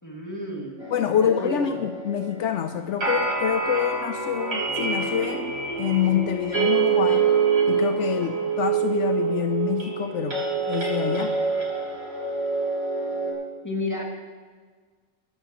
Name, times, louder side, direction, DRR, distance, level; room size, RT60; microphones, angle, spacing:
voice 1, 0.0-0.8 1.1-1.8 13.6-14.0, left 1 dB, 15° left, -1 dB, 2.3 m, -32 dB
sound 1, 0.8-13.3, right 5 dB, 55° right, 4.4 m, -26 dB
voice 2, 0.9-7.3 7.7-10.4 10.7-11.4, left 9 dB, 75° left, 8 dB, 0.9 m, -26 dB
22.5 x 11.5 x 3.0 m, 1.5 s
omnidirectional pair, 1.3 m